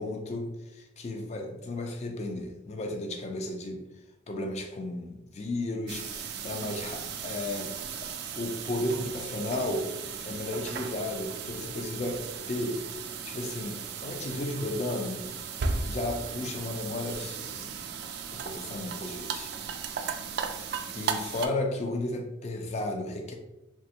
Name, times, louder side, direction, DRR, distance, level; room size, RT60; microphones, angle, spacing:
voice 1, 0.0-3.8 4.3-12.9 13.2-15.2 15.8-17.5 18.3-19.5 20.5-23.4, left 2 dB, 35° left, 3 dB, 0.4 m, -34 dB
sound 1, 5.9-21.5, right 6 dB, 55° right, 0.3 m, -36 dB
3.2 x 2.3 x 2.8 m, 0.96 s
head